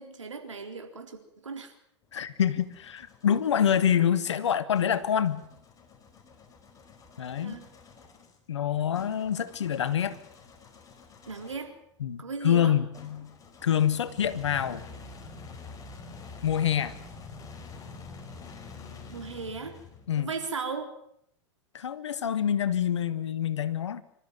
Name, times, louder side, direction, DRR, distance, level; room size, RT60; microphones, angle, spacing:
voice 1, 0.0-1.7 7.4-7.7 11.3-11.7 12.2-12.8 19.1-19.8 20.2-20.9, right 4 dB, 80° right, 4 dB, 4.0 m, -37 dB
sound 1, 2.0-3.8 4.7-11.7 12.9-20.2, left 4 dB, 20° left, 5.0 m, -48 dB
voice 2, 2.1-5.4 7.2-7.6 8.5-10.2 12.0-13.3 13.6-14.8 16.4-17.0 20.1-20.3 21.7-24.0, left 9 dB, 70° left, 13 dB, 1.7 m, -26 dB
26.0 x 13.5 x 9.5 m, 0.72 s
figure-of-eight pair, 95°, 16 cm